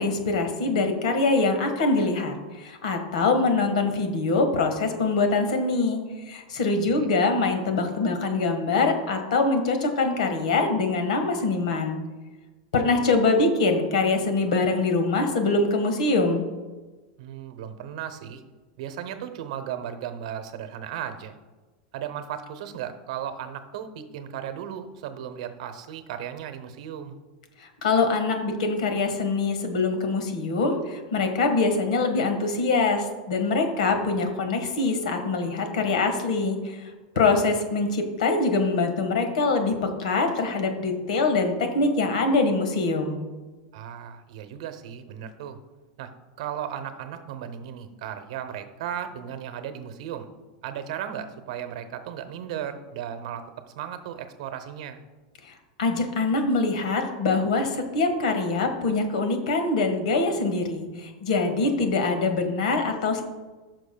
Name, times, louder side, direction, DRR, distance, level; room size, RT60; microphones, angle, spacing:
voice 1, 0.0-6.0 6.2-12.0 12.7-16.4 27.6-36.9 37.1-43.2 55.4-55.5 55.8-63.2, left 3 dB, 85° left, 6 dB, 1.4 m, -24 dB
voice 2, 17.2-18.4 18.8-21.3 21.9-27.2 37.3-37.5 43.7-45.6 46.0-46.1 46.4-50.3 50.6-53.4 53.7-55.0, right 9 dB, 60° right, 9 dB, 0.8 m, -36 dB
15.0 x 6.1 x 2.3 m, 1.3 s
supercardioid pair, 170°, 4 cm